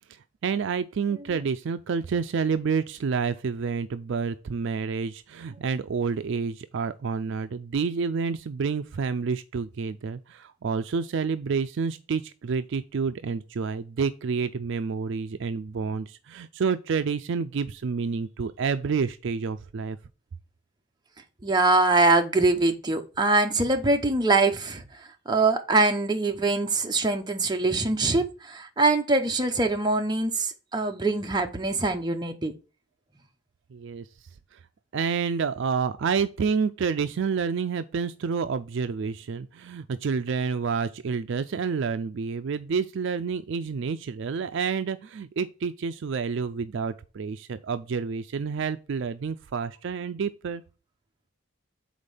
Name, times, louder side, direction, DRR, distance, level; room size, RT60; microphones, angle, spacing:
voice 1, 0.1-20.0 33.7-34.1 34.5-34.6 34.9-50.6, right 5 dB, 55° right, 0.4 m, -29 dB
voice 2, 21.4-32.5, right 3 dB, 20° right, 0.7 m, -23 dB
5.1 x 4.1 x 5.5 m
head